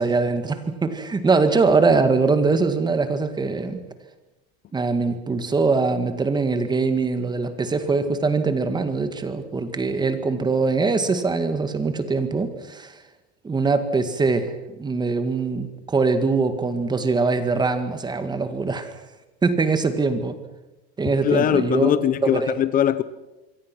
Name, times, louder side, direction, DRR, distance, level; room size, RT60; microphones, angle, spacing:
voice 1, 0.0-3.8 4.7-13.0 13.4-19.0 19.4-20.4 21.0-21.9 22.2-22.6, right 4 dB, 10° right, 1.9 m, -22 dB
voice 2, 21.2-23.0, left 10 dB, 25° left, 0.8 m, -21 dB
26.5 x 23.0 x 6.2 m
supercardioid pair, 155°, 34 cm